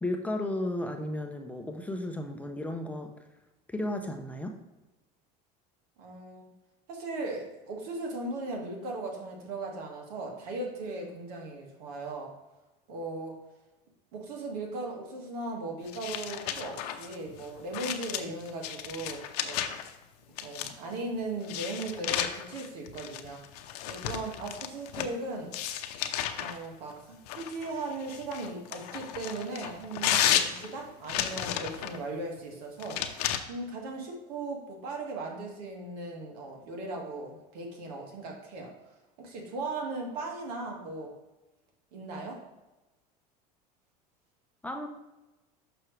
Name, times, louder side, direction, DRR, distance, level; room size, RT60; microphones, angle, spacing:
voice 1, 0.0-3.1 3.7-4.5 44.6-44.9, left 1 dB, 5° left, 4 dB, 0.7 m, -34 dB
voice 2, 6.0-6.5 6.9-12.3 12.9-13.3 14.1-19.8 20.4-23.4 23.9-25.5 26.4-38.7 39.2-41.1 41.9-42.4, right 2 dB, 80° right, 1 dB, 1.8 m, -38 dB
sound 1, 15.9-19.9 20.4-20.9 21.4-25.1 25.5-26.6 27.3-32.0 32.8-33.4, left 10 dB, 85° left, 0.6 m, -33 dB
6.3 x 5.9 x 3.2 m, 1.0 s
supercardioid pair, 115°, 20 cm